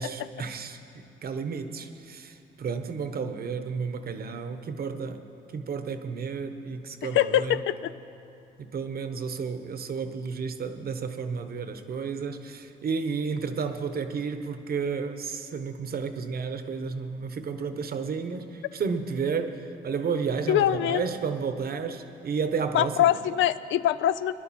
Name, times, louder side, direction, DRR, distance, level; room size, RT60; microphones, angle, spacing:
voice 1, 0.0-5.2 5.5-7.6 8.6-23.0, right 5 dB, 50° right, 9 dB, 1.0 m, -32 dB
voice 2, 7.0-7.9 20.5-21.1 22.7-24.3, left 11 dB, 75° left, 14 dB, 0.5 m, -23 dB
20.5 x 11.0 x 4.3 m, 2.8 s
cardioid pair, 90°, 20 cm